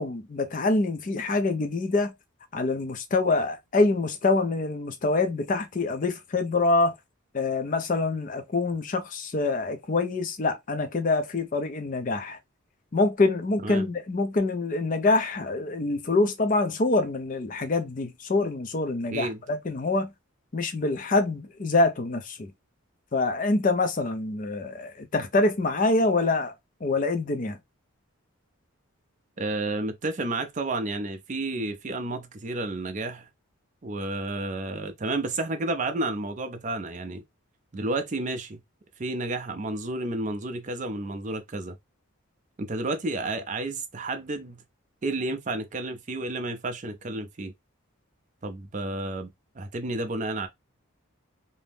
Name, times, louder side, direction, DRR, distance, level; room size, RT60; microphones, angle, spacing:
voice 1, 0.0-2.1 2.5-6.9 7.3-12.4 12.9-20.1 20.5-22.5 23.1-26.5 26.8-27.6, left 3 dB, 35° left, 0.4 m, -25 dB
voice 2, 19.1-19.4 29.4-33.3 33.8-37.2 37.7-38.6 39.0-41.7 42.6-44.6 45.0-47.5 48.4-50.5, right 2 dB, 35° right, 0.4 m, -31 dB
2.6 x 2.0 x 3.3 m
head